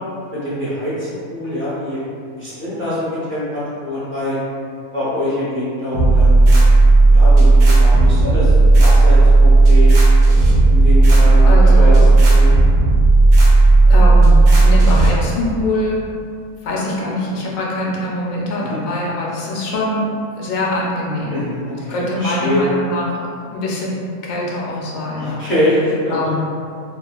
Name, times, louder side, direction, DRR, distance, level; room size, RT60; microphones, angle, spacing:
voice 1, 0.3-2.0 2.3-4.4 4.9-6.5 7.1-8.5 8.8-9.9 10.6-11.9 12.3-12.6 18.6-18.8 21.3-22.6 25.2-26.3, left 1 dB, 15° left, -12 dB, 0.5 m, -24 dB
sound 1, 5.9-15.1, right 2 dB, 80° right, 1.1 m, -10 dB
voice 2, 11.4-12.2 13.9-16.0 16.6-20.1 20.4-21.4 21.9-23.2 23.5-24.0 24.2-25.4 26.1-26.4, left 1 dB, 75° left, -4 dB, 0.9 m, -23 dB
2.9 x 2.3 x 2.3 m, 2.3 s
omnidirectional pair, 1.5 m